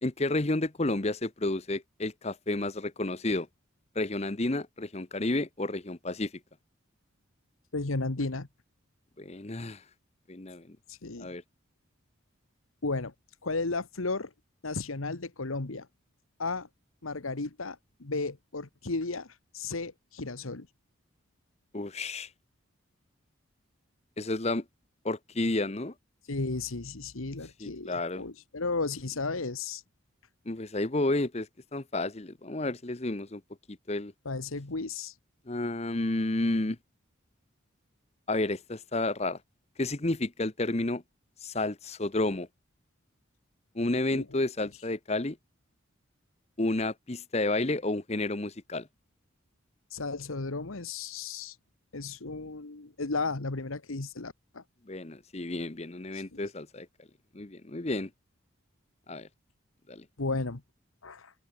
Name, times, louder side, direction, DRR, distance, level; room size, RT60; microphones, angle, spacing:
voice 1, 0.0-3.5 3.9-6.3 9.2-9.8 10.3-10.8 11.2-11.4 21.7-22.3 24.2-24.6 25.0-25.9 27.6-28.2 30.5-33.4 33.7-34.1 35.5-36.8 38.3-39.4 39.8-41.0 41.4-42.5 43.7-45.4 46.6-48.9 54.9-56.9 57.3-58.1 59.1-59.3 59.9-60.0, left 2 dB, 30° left, 1.0 m, -31 dB
voice 2, 7.7-8.5 10.9-11.3 12.8-13.1 13.4-14.3 14.6-15.9 16.4-16.7 17.0-20.7 26.3-29.8 34.2-35.1 44.1-44.4 49.9-51.6 51.9-54.6 56.1-56.4 60.2-60.6 61.0-61.3, left 3 dB, 85° left, 1.4 m, -34 dB
open air
head